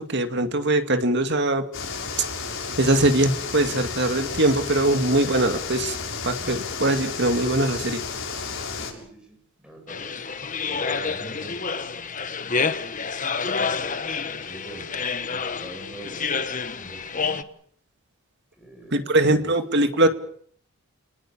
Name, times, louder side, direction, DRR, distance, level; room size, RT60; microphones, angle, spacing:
voice 1, 0.0-1.6 2.8-6.0 6.2-8.0 18.9-20.1, right 1 dB, 50° right, 8 dB, 2.3 m, -21 dB
sound 1, 1.7-8.9, left 5 dB, 60° left, 7.1 m, -32 dB
voice 2, 8.7-12.7 14.1-17.5 18.6-19.7, right 1 dB, 5° right, 2 dB, 7.7 m, -44 dB
sound 2, 9.9-17.4, left 5 dB, 35° left, 1.3 m, -28 dB
29.5 x 20.5 x 7.4 m, 0.63 s
head